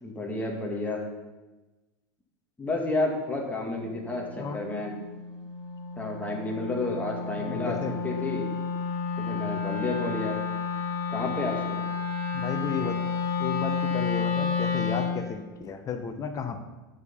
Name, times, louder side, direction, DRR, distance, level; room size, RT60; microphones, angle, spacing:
voice 1, 0.0-1.0 2.6-4.9 6.0-8.5 9.2-10.4 11.1-11.8, left 2 dB, 15° left, 0 dB, 2.4 m, -31 dB
Wind instrument woodwind instrument, 3.6-15.2, left 5 dB, 60° left, 3.0 m, -31 dB
voice 2, 7.4-7.9 12.3-16.6, left 6 dB, 30° left, 7 dB, 1.3 m, -34 dB
9.5 x 7.0 x 5.6 m, 1.1 s
hypercardioid pair, 105°, 11 cm